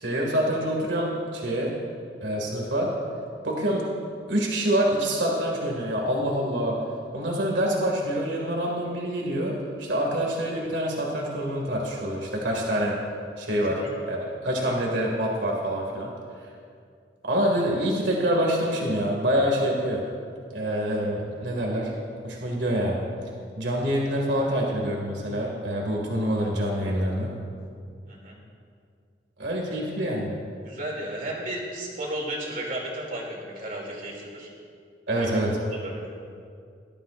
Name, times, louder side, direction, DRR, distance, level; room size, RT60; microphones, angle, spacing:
voice 1, 0.0-1.8 2.2-2.9 3.4-3.8 4.3-6.8 7.1-9.5 9.8-13.0 13.4-13.7 14.1-16.1 17.2-20.0 20.5-21.9 22.2-23.0 23.6-27.3 29.4-30.3 35.1-35.6, equal, 75° right, -2 dB, 2.2 m, -26 dB
voice 2, 28.1-28.4 30.6-34.5 35.2-36.1, right 1 dB, 50° right, -2 dB, 2.7 m, -34 dB
19.0 x 13.0 x 2.6 m, 2.3 s
head